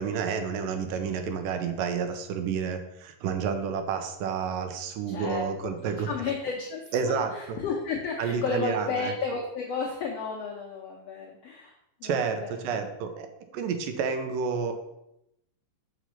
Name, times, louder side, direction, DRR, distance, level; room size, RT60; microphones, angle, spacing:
voice 1, 0.0-6.1 6.9-7.3 8.2-9.1 12.0-13.3 13.5-14.7, right 6 dB, 80° right, 7 dB, 2.3 m, -30 dB
voice 2, 5.1-5.7 6.1-11.7 12.0-12.8, left 4 dB, 80° left, -1 dB, 1.4 m, -33 dB
6.1 x 5.3 x 5.6 m, 0.85 s
omnidirectional pair, 4.0 m